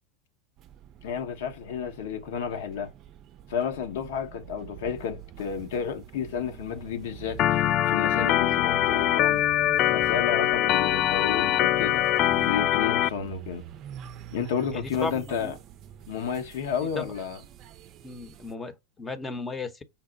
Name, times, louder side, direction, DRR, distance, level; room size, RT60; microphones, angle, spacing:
sound 1, 0.6-18.6, right 11 dB, 45° right, 0.5 m, -45 dB
voice 1, 1.0-2.9 3.5-9.4 9.9-12.0 12.4-13.7 14.3-15.6 16.1-17.4, left 7 dB, 70° left, 1.0 m, -31 dB
Organ, 7.4-13.1, left 13 dB, 45° left, 0.3 m, -23 dB
voice 2, 14.7-15.5 16.9-17.1 18.0-19.8, left 3 dB, 20° left, 0.9 m, -35 dB
5.6 x 2.1 x 3.9 m
hypercardioid pair, 95°, 0 cm